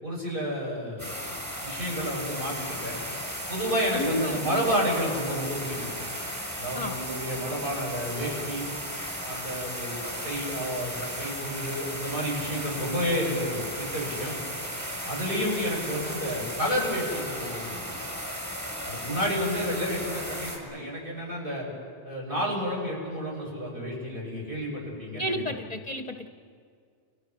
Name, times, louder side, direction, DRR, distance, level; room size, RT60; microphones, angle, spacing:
voice 1, 0.0-1.1 1.6-3.0 3.5-5.9 6.6-8.7 9.2-14.4 15.1-17.8 18.9-21.7 22.0-25.6, equal, 50° right, -3 dB, 7.4 m, -30 dB
sound 1, 1.0-20.6, equal, 15° right, 4.8 m, -35 dB
voice 2, 3.9-4.7 6.7-7.0 25.2-26.3, equal, 40° left, 6 dB, 0.9 m, -31 dB
30.0 x 24.0 x 6.0 m, 2.2 s
omnidirectional pair, 1.2 m